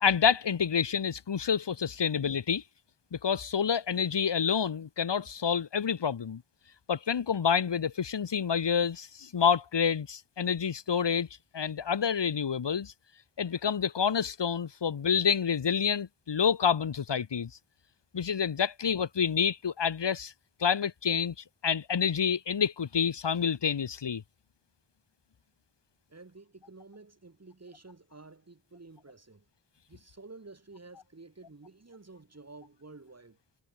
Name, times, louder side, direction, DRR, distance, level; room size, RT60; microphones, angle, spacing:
voice 1, 0.0-2.6 3.1-6.4 6.9-11.3 11.5-12.9 13.4-17.5 18.1-20.3 20.6-21.3 21.6-24.2, left 7 dB, 75° left, 1.9 m, -28 dB
voice 2, 26.1-29.5 29.9-33.4, right 3 dB, 35° right, 5.1 m, -51 dB
wide cardioid pair, 90°, 42 cm